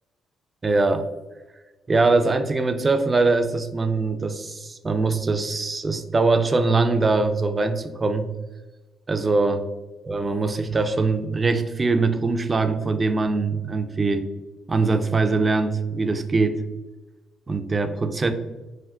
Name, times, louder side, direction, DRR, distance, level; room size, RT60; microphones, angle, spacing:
voice 1, 0.6-1.1 1.9-8.3 9.1-9.6 10.0-14.2 14.7-16.6 17.5-18.3, right 3 dB, 30° right, 8 dB, 0.3 m, -22 dB
3.4 x 2.4 x 2.3 m, 1.2 s
cardioid pair, 75°, 0 cm